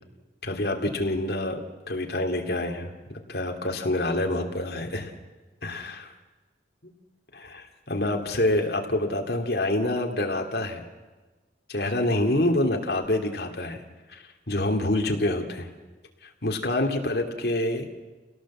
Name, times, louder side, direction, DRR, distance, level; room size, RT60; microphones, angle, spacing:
voice 1, 0.4-1.6 1.9-2.9 3.3-5.1 5.6-6.1 6.8-6.9 7.3-10.8 11.7-13.8 14.1-15.7 16.2-18.0, left 1 dB, 60° left, 3 dB, 2.8 m, -27 dB
29.5 x 17.5 x 7.5 m, 1.3 s
head